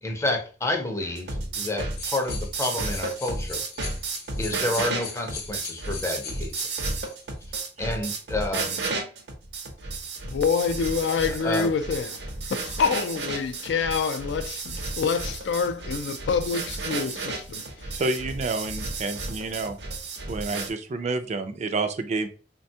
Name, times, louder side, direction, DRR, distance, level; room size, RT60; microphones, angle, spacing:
voice 1, 0.0-3.6 4.4-6.5 7.5-8.8 11.4-11.7, left 2 dB, 15° left, 0.5 m, -29 dB
sound 1, 1.0-20.7, right 3 dB, 70° right, 0.7 m, -33 dB
sound 2, 1.9-7.3 8.1-8.2 13.6-14.2, left 6 dB, 55° left, 0.7 m, -40 dB
voice 2, 10.2-18.0, left 5 dB, 70° left, 0.3 m, -27 dB
voice 3, 17.9-19.8 20.3-22.3, right 3 dB, 40° right, 0.3 m, -29 dB
3.3 x 2.2 x 2.7 m
head